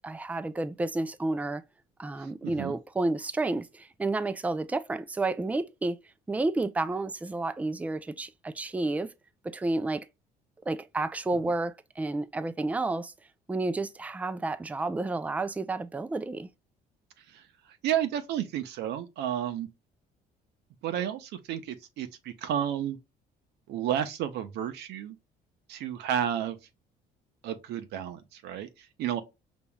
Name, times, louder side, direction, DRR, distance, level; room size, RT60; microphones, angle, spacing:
voice 1, 0.0-1.6 2.0-6.0 6.3-9.1 9.4-10.0 10.7-13.1 13.5-16.5, right 2 dB, 10° right, 0.4 m, -31 dB
voice 2, 2.2-2.7 17.3-17.4 17.8-19.7 20.8-23.0 23.7-25.2 25.7-26.6 27.4-29.2, right 10 dB, 80° right, 0.8 m, -32 dB
5.4 x 3.0 x 2.2 m
cardioid pair, 110°, 17 cm